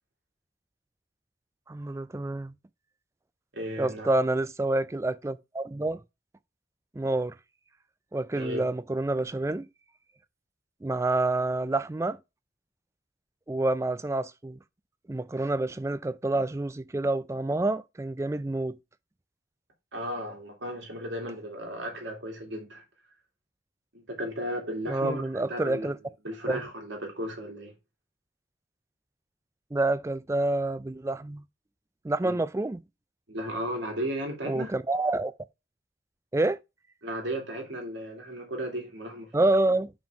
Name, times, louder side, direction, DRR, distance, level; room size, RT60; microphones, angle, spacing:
voice 1, 1.7-2.5 3.8-6.0 6.9-7.4 8.1-9.7 10.8-12.2 13.5-14.6 15.1-18.8 24.9-26.0 26.5-26.6 29.7-31.4 32.0-32.8 34.5-35.3 36.3-36.6 39.3-39.9, right 2 dB, 15° right, 0.3 m, -28 dB
voice 2, 3.5-4.1 8.3-8.6 19.9-22.8 23.9-25.9 26.2-27.7 32.2-32.4 33.3-34.7 37.0-39.5, equal, 75° right, 2.4 m, -35 dB
5.3 x 5.3 x 4.7 m
head